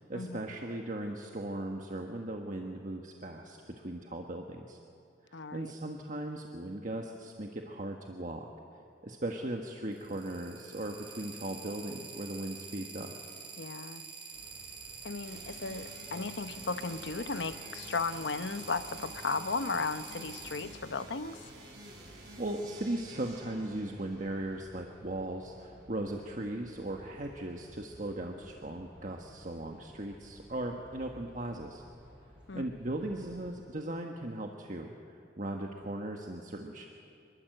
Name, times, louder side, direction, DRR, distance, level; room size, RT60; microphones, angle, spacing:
voice 1, 0.0-4.8 5.2-8.5 9.0-13.1 22.0-31.8 32.5-36.9, right 1 dB, 45° right, 2 dB, 1.4 m, -38 dB
voice 2, 5.3-5.7 13.6-14.0 15.0-21.4 32.5-32.7, left 4 dB, 85° left, 11 dB, 0.9 m, -35 dB
sound 1, 9.9-20.6, right 5 dB, 25° right, 4.8 m, -46 dB
sound 2, 14.3-33.6, equal, 5° right, 7.3 m, -57 dB
sound 3, 15.2-24.9, right 1 dB, 65° right, 6.8 m, -51 dB
25.0 x 21.5 x 7.9 m, 2.5 s
head